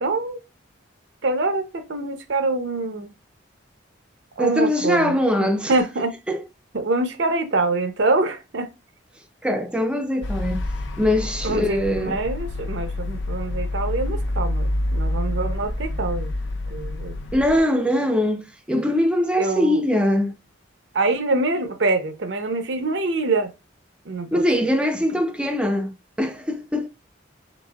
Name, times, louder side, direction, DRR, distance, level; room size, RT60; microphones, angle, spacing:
voice 1, 0.0-0.4 1.2-3.1 4.4-6.1 6.7-8.7 11.4-16.3 16.7-17.2 19.4-19.8 20.9-23.5 24.1-24.4, right 2 dB, 65° right, 0.7 m, -25 dB
voice 2, 4.4-5.7 6.3-6.4 9.4-10.6 11.0-12.2 17.3-20.4 24.3-26.9, left 1 dB, 5° right, 0.4 m, -22 dB
sound 1, 10.2-17.6, left 1 dB, 75° left, 0.6 m, -27 dB
4.9 x 4.0 x 2.3 m
head